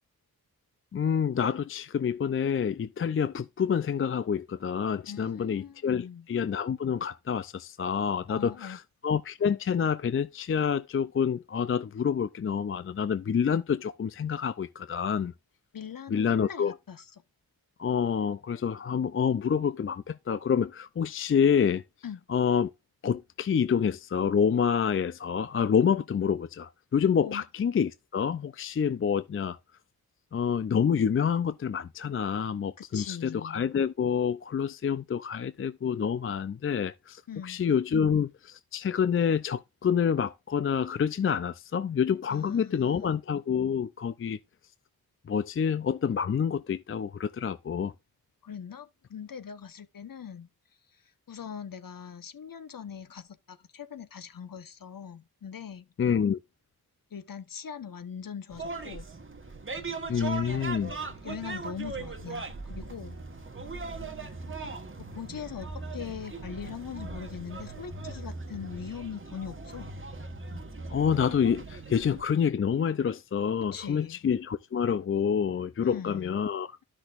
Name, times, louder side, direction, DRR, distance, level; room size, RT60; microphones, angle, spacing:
voice 1, 0.9-15.3 16.1-16.7 17.8-21.8 22.3-22.7 23.0-29.6 30.3-44.4 45.3-47.9 56.0-56.4 60.1-60.9 70.9-76.8, left 7 dB, 35° left, 0.4 m, -27 dB
voice 2, 5.1-6.3 8.3-8.8 15.7-17.0 22.0-22.2 27.2-27.4 32.8-33.7 37.3-37.6 42.3-43.1 48.4-50.5 51.3-55.9 57.1-59.1 61.2-63.2 65.0-69.9 73.7-74.2 75.8-76.4, left 7 dB, 60° left, 1.1 m, -41 dB
sound 1, 58.5-72.2, right 3 dB, 30° right, 1.4 m, -39 dB
12.5 x 6.2 x 2.5 m
cardioid pair, 60°, 39 cm